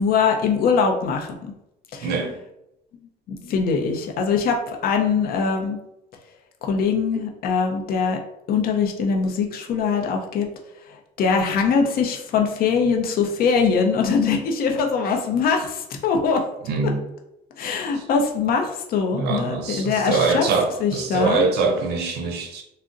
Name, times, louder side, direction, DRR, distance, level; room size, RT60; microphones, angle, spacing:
voice 1, 0.0-1.5 1.9-2.1 3.3-4.6 4.8-5.8 6.6-8.2 8.5-10.5 11.2-16.4 16.8-16.9 17.6-20.4 20.8-21.4, left 5 dB, 60° left, 0.6 m, -22 dB
voice 2, 2.0-2.4 16.7-17.0 18.0-18.1 19.1-22.6, right 4 dB, 75° right, 0.6 m, -23 dB
3.6 x 2.1 x 2.5 m
cardioid pair, 110°, 17 cm